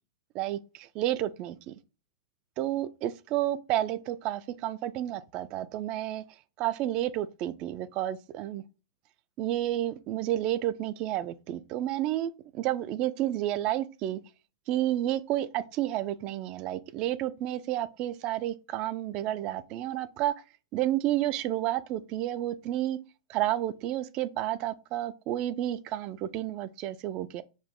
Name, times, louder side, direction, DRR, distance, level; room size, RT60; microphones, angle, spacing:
voice 1, 0.3-1.7 2.6-6.2 6.6-8.6 9.4-14.2 14.7-20.3 20.7-23.0 23.3-27.4, right 13 dB, 30° right, 0.3 m, -31 dB
4.8 x 2.1 x 3.6 m
hypercardioid pair, 150°, 3 cm